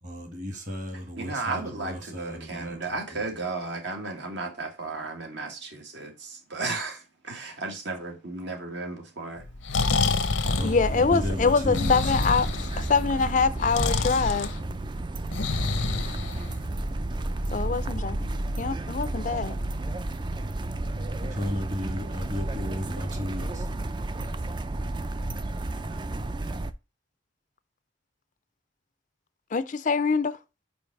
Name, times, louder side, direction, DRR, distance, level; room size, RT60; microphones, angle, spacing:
voice 1, 0.0-2.8 3.1-3.2 10.6-11.9 21.2-23.7, left 1 dB, 40° right, 2.0 m, -34 dB
voice 2, 1.2-9.4, right 3 dB, 65° right, 1.7 m, -34 dB
Breathing, 9.4-16.8, left 4 dB, 90° left, 0.7 m, -29 dB
sound 1, 10.4-26.7, right 2 dB, 25° right, 0.4 m, -32 dB
voice 3, 10.6-12.5 12.8-14.5 17.5-18.2 18.6-19.6 29.5-30.4, left 4 dB, 40° left, 0.4 m, -24 dB
5.2 x 4.8 x 4.7 m
head